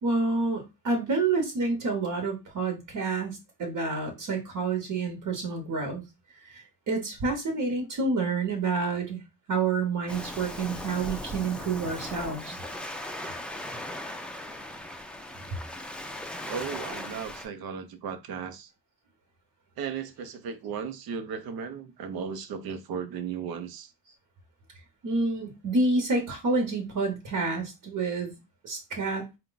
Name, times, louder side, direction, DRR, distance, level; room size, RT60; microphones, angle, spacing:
voice 1, 0.0-6.0 6.4-9.2 9.5-12.6 25.0-28.3 28.6-29.3, right 3 dB, 55° right, 1.1 m, -28 dB
Waves surf, 10.1-17.5, left 1 dB, 5° left, 0.4 m, -38 dB
voice 2, 16.5-18.7 19.8-23.9, right 6 dB, 70° right, 0.7 m, -36 dB
4.3 x 2.2 x 3.9 m
cardioid pair, 140°, 38 cm